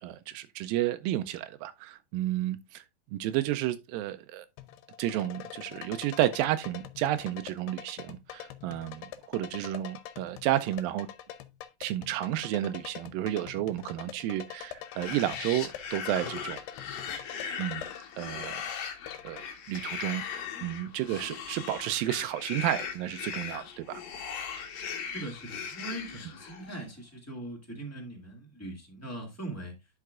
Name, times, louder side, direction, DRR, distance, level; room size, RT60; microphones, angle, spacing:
voice 1, 0.0-2.9 3.1-4.5 5.0-11.1 11.8-16.6 16.9-17.2 17.6-17.9 18.2-18.6 19.2-19.4 19.7-24.0, right 13 dB, 90° right, 2.0 m, -31 dB
sound 1, 4.6-19.5, left 11 dB, 90° left, 2.9 m, -45 dB
sound 2, 14.8-26.8, left 7 dB, 65° left, 2.9 m, -39 dB
voice 2, 25.1-29.7, right 1 dB, 10° left, 0.8 m, -41 dB
11.0 x 5.7 x 2.3 m
omnidirectional pair, 4.6 m